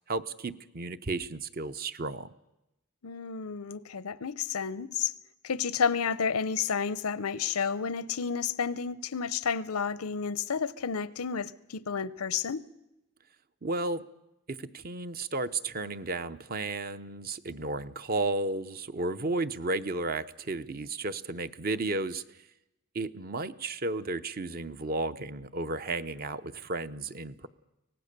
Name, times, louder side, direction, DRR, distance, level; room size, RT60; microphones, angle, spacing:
voice 1, 0.1-2.3 13.6-14.1 14.5-22.2 22.9-27.5, right 2 dB, 40° right, 0.7 m, -33 dB
voice 2, 3.0-5.1 5.4-12.6, left 6 dB, 85° left, 0.7 m, -31 dB
24.0 x 18.0 x 6.7 m
head